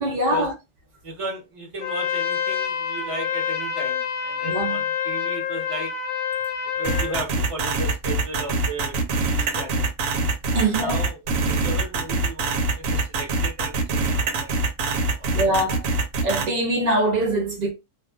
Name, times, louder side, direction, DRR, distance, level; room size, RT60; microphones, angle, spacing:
voice 1, 0.0-0.5 4.4-4.8 9.4-9.5 10.5-10.9 15.3-15.9 16.2-17.7, right 1 dB, 75° right, 0.4 m, -23 dB
voice 2, 1.0-5.9 6.7-9.0 9.2-9.9 10.6-13.7 14.1-14.6 15.2-15.5, right 1 dB, 30° right, 0.7 m, -35 dB
Trumpet, 1.8-7.2, left 7 dB, 70° left, 0.9 m, -27 dB
sound 1, 6.8-16.4, right 3 dB, 90° right, 1.0 m, -24 dB
2.5 x 2.3 x 2.3 m
omnidirectional pair, 1.3 m